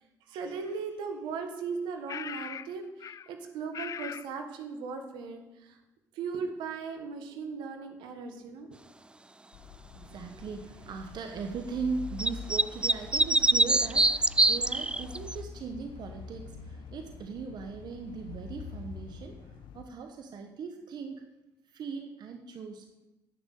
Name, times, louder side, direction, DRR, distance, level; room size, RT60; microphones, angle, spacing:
voice 1, 0.3-5.8 6.1-8.7, right 5 dB, 85° right, 6 dB, 1.6 m, -38 dB
sound 1, 0.6-0.7 2.1-2.7 3.0-3.3 3.7-4.3, left 8 dB, 45° left, 0.4 m, -39 dB
sound 2, 9.5-19.8, left 5 dB, 80° left, 1.0 m, -45 dB
voice 2, 9.9-21.2 21.6-22.9, right 5 dB, 65° right, 5 dB, 1.3 m, -39 dB
sound 3, 12.2-15.3, right 2 dB, 10° right, 0.4 m, -23 dB
10.5 x 6.5 x 8.4 m, 1.0 s
supercardioid pair, 65°, 8 cm